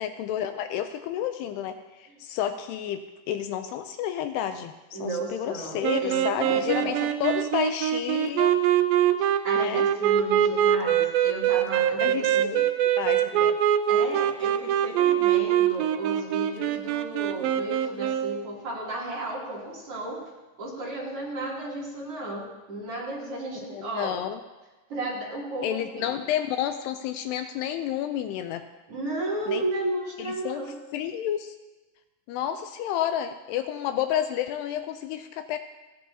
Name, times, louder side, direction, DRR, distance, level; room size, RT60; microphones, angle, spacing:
voice 1, 0.0-3.0 3.3-8.5 9.6-9.9 12.0-12.6 13.0-13.6 23.7-24.4 25.6-28.7 29.5-29.6 30.2-30.6 30.9-31.6 32.3-35.6, left 10 dB, 80° left, 8 dB, 2.6 m, -30 dB
voice 2, 4.9-7.1 9.2-12.6 13.9-20.2 20.6-24.2 24.9-26.1 28.9-30.7, right 2 dB, 35° right, -6 dB, 3.6 m, -34 dB
sound 1, 5.8-18.5, right 10 dB, 90° right, 2.0 m, -23 dB
29.5 x 10.0 x 2.8 m, 1.1 s
omnidirectional pair, 4.9 m